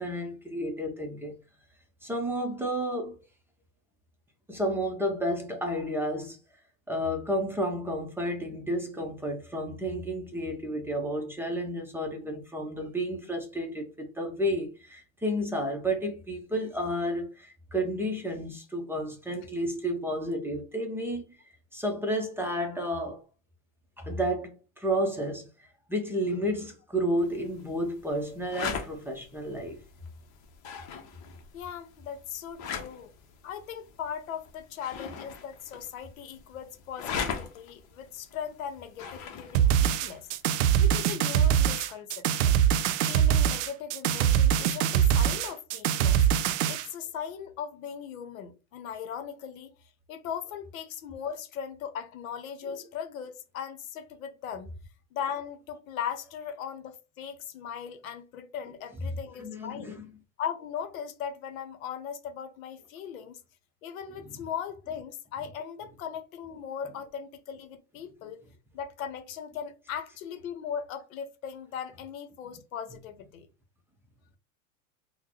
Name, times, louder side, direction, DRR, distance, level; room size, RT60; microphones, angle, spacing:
voice 1, 0.0-1.3 2.0-3.2 4.5-6.4 6.9-21.4 21.7-23.2 24.0-25.5 25.9-29.8 59.4-60.1, equal, 5° right, 0.6 m, -31 dB
sound 1, 27.2-41.0, left 6 dB, 45° left, 0.9 m, -41 dB
voice 2, 31.5-33.1 33.4-40.3 40.8-42.6 43.1-46.2 46.7-49.7 50.1-54.7 55.1-60.0 60.4-63.4 63.8-68.4 68.7-73.5, left 8 dB, 80° left, 0.8 m, -38 dB
sound 2, 39.5-46.9, right 9 dB, 60° right, 0.5 m, -23 dB
3.7 x 2.2 x 2.9 m
supercardioid pair, 115°, 40 cm